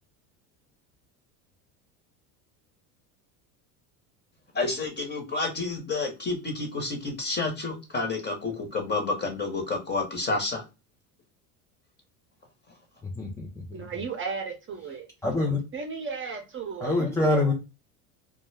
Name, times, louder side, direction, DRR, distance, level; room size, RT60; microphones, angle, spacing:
voice 1, 4.5-10.6, left 3 dB, 25° left, 1.0 m, -30 dB
voice 2, 13.0-13.8 15.2-15.6 16.8-17.5, left 2 dB, 10° left, 0.3 m, -25 dB
voice 3, 13.7-15.1 15.7-17.0, right 5 dB, 25° right, 0.7 m, -34 dB
2.3 x 2.0 x 3.1 m
supercardioid pair, 90°, 44 cm